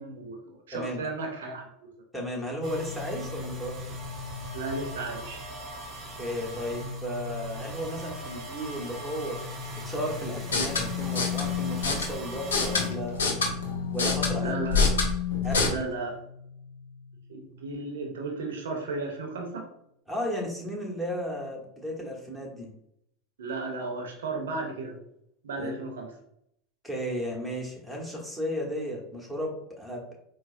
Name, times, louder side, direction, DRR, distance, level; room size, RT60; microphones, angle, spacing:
voice 1, 0.0-1.7 4.5-5.4 14.4-14.8 15.6-16.2 17.3-19.6 23.4-25.0 25.4-26.1, right 3 dB, 75° right, 2 dB, 0.6 m, -34 dB
voice 2, 2.1-4.0 6.2-9.4 9.7-13.2 13.9-14.6 15.4-15.9 20.1-22.7 25.6-25.7 26.8-30.1, equal, ahead, -3 dB, 1.1 m, -34 dB
sound 1, 2.6-15.3 15.6-18.1, left 1 dB, 30° right, 0.9 m, -40 dB
sound 2, 10.4-15.7, left 4 dB, 80° left, 0.6 m, -27 dB
4.2 x 2.0 x 2.5 m, 0.73 s
hypercardioid pair, 85°, 0 cm